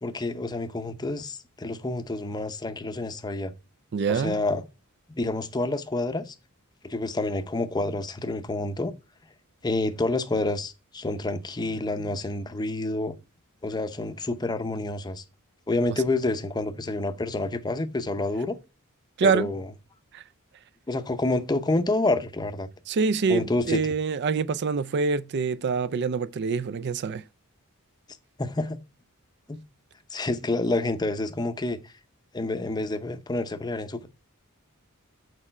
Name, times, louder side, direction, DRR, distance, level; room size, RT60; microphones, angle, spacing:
voice 1, 0.0-3.5 4.1-4.6 5.2-6.3 6.8-8.9 9.6-13.2 13.6-15.2 15.7-18.6 19.2-19.7 20.9-22.7 23.3-23.9 28.4-28.8 29.5-29.6 30.1-31.9 32.3-34.1, left 2 dB, 20° left, 0.6 m, -28 dB
voice 2, 3.9-4.4 19.2-19.5 20.1-20.2 22.9-27.2, right 5 dB, 50° right, 0.4 m, -25 dB
6.7 x 4.8 x 4.2 m
head